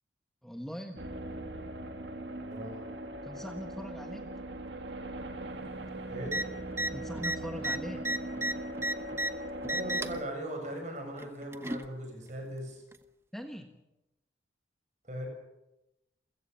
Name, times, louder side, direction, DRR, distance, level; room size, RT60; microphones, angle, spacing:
voice 1, 0.4-1.0 3.2-4.3 6.9-8.1 13.3-13.8, equal, ahead, 4 dB, 1.4 m, -41 dB
sound 1, 1.0-10.2, right 1 dB, 70° right, 2.1 m, -40 dB
voice 2, 2.3-2.8 6.1-6.4 9.6-12.8 15.0-15.3, right 1 dB, 40° right, 4 dB, 7.1 m, -39 dB
sound 2, 6.3-6.4 6.7-6.9 7.2-9.3 9.6-10.2 11.2-11.9 12.9-13.0, right 1 dB, 15° right, 1.0 m, -32 dB
30.0 x 16.0 x 7.0 m, 0.94 s
head